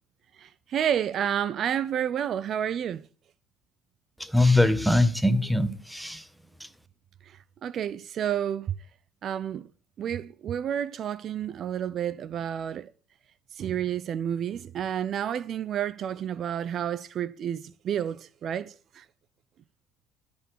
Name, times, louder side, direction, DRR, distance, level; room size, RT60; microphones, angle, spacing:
voice 1, 0.3-3.1 7.2-8.7 9.2-9.7 10.0-12.9 13.5-19.1, right 9 dB, 55° right, 0.5 m, -30 dB
voice 2, 4.2-6.2, left 2 dB, ahead, 1.3 m, -22 dB
12.5 x 7.0 x 6.2 m
hypercardioid pair, 70°, 0 cm